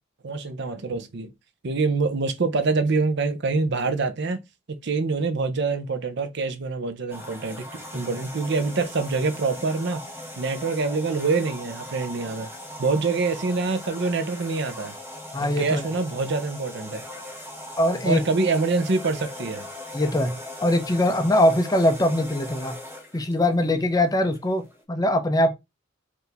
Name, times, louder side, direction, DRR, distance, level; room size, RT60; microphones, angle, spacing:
voice 1, 0.2-1.3 1.6-4.4 4.8-10.0 10.4-12.5 12.8-14.9 15.6-17.1 18.0-19.7, right 3 dB, 60° right, 0.6 m, -25 dB
sound 1, 7.1-24.8, left 1 dB, 10° right, 1.0 m, -39 dB
voice 2, 15.3-15.9 17.8-18.2 19.9-22.8 23.1-25.6, left 1 dB, 20° left, 0.5 m, -22 dB
4.5 x 2.6 x 3.3 m
head